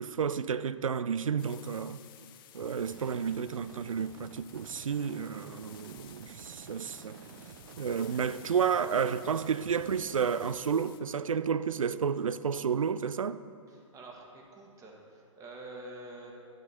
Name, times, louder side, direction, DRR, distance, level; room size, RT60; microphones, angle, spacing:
voice 1, 0.0-2.0 2.5-7.2 7.8-13.4, right 7 dB, 80° right, 0.4 m, -31 dB
sound 1, 1.4-11.0, left 11 dB, 40° left, 0.6 m, -55 dB
sound 2, 2.6-10.7, right 6 dB, 45° right, 0.7 m, -50 dB
voice 2, 13.7-16.3, right 2 dB, 20° right, 1.5 m, -47 dB
10.5 x 7.5 x 4.3 m
figure-of-eight pair, 115°, 17 cm